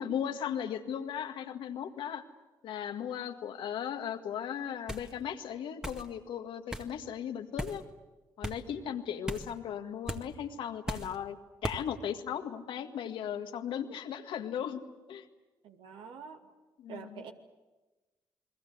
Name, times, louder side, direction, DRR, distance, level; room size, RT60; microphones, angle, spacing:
voice 1, 0.0-2.2 2.6-7.8 8.4-11.4 11.6-14.8 15.1-15.3 16.8-17.2, left 9 dB, 75° left, 6 dB, 1.8 m, -37 dB
sound 1, 4.9-5.1 5.8-6.1 6.7-6.9 7.6-7.8 8.4-8.6 9.3-9.5 10.1-10.2 10.9-11.1 11.6-11.8, right 1 dB, 10° right, 1.9 m, -37 dB
voice 2, 15.6-16.5 16.9-17.3, right 6 dB, 75° right, 5 dB, 2.3 m, -46 dB
29.5 x 21.5 x 8.0 m, 1.2 s
supercardioid pair, 55°, 9 cm